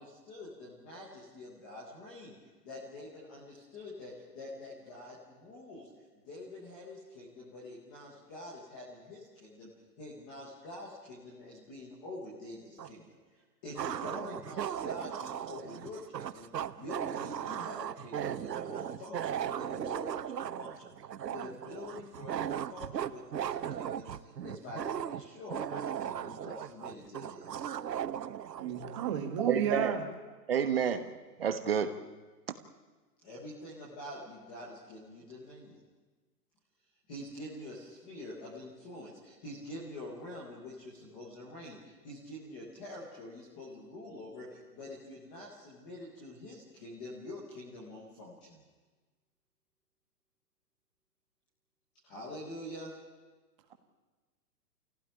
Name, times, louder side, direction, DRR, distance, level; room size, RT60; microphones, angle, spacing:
voice 1, 0.0-2.3 2.6-5.9 6.2-9.7 10.0-13.0 13.3-20.9 21.3-27.6 33.2-35.8 37.1-48.6 52.0-52.9, left 1 dB, 5° left, 0.8 m, -46 dB
sound 1, 12.8-12.9 13.8-29.1, right 9 dB, 90° right, 1.1 m, -37 dB
voice 2, 28.6-30.0, right 8 dB, 20° right, 1.7 m, -32 dB
voice 3, 29.4-29.9 30.5-31.1 31.4-31.9, right 7 dB, 40° right, 1.2 m, -29 dB
25.5 x 16.5 x 10.0 m
hypercardioid pair, 175°, 48 cm